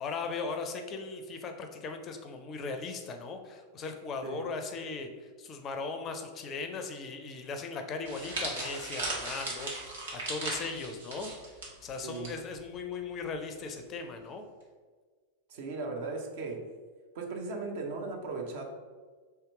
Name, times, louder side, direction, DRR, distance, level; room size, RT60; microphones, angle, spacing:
voice 1, 0.0-11.3 11.8-14.4, left 4 dB, 30° left, 6 dB, 0.4 m, -38 dB
sound 1, 8.0-12.3 12.6-12.8 13.7-14.0, right 2 dB, 65° right, 1.1 m, -37 dB
voice 2, 15.5-16.6 17.1-18.6, right 3 dB, 50° right, 2 dB, 0.7 m, -37 dB
3.3 x 2.8 x 4.6 m, 1.5 s
figure-of-eight pair, 90°, 0 cm